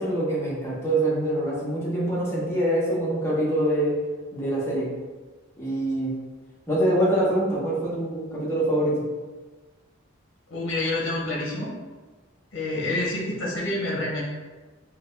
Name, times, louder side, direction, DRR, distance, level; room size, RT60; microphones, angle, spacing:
voice 1, 0.0-3.9 4.3-4.9 5.6-6.1 6.7-9.0, right 1 dB, 15° left, -7 dB, 1.0 m, -24 dB
voice 2, 10.5-11.7 12.5-14.2, left 2 dB, 65° left, -3 dB, 0.8 m, -28 dB
3.4 x 2.3 x 3.2 m, 1.3 s
head